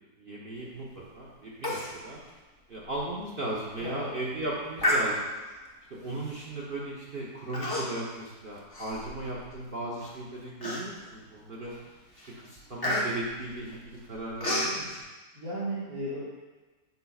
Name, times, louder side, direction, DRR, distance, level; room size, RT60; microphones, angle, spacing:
voice 1, 0.2-2.2 2.7-5.2 6.0-11.7 12.4-15.0, right 1 dB, 45° right, -5 dB, 0.8 m, -36 dB
Human voice, 1.6-2.0 2.3-2.4 2.9-3.0 3.6-3.8 4.8-5.5 6.3-6.5 7.5-8.1 8.5-9.5 10.0-10.1 10.6-11.2 11.7-11.9 12.2-14.8, left 1 dB, 20° left, 0.8 m, -31 dB
voice 2, 3.8-4.1 15.3-16.2, right 1 dB, 75° right, -13 dB, 2.3 m, -34 dB
8.1 x 5.5 x 2.3 m, 1.2 s
omnidirectional pair, 1.8 m